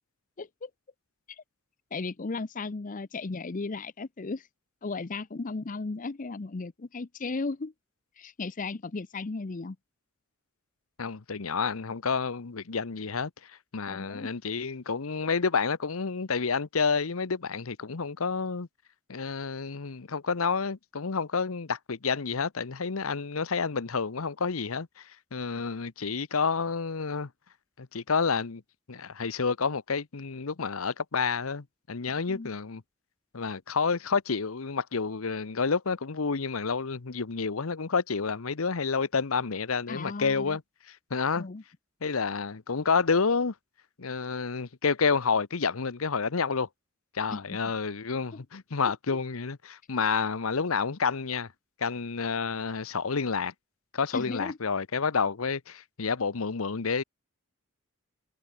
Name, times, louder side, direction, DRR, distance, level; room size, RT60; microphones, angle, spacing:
voice 1, 0.4-0.7 1.3-1.4 1.9-4.5 4.8-7.7 8.2-9.8 13.9-14.3 32.3-32.5 39.9-40.6 41.4-41.6 47.3-47.6 48.3-48.4 54.1-54.6, left 3 dB, 40° left, 0.6 m, -35 dB
voice 2, 11.0-13.3 13.7-18.7 19.1-25.0 25.3-27.3 27.8-28.6 28.9-32.8 33.3-40.6 40.9-41.5 42.0-43.5 44.0-46.7 47.1-51.5 51.8-53.5 53.9-57.0, left 5 dB, 90° left, 0.9 m, -29 dB
head